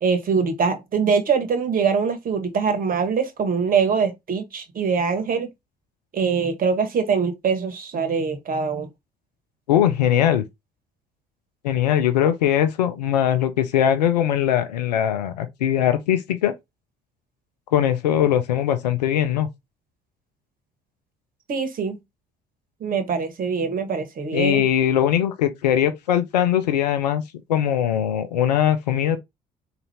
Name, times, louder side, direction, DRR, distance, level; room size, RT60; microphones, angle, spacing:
voice 1, 0.0-5.5 6.1-8.9 21.5-22.0 22.8-24.6, right 5 dB, 45° right, 1.1 m, -23 dB
voice 2, 9.7-10.4 11.6-16.5 17.7-19.5 24.3-27.2 27.5-29.2, left 10 dB, 85° left, 0.5 m, -21 dB
3.9 x 2.5 x 3.2 m
figure-of-eight pair, 50°, 21 cm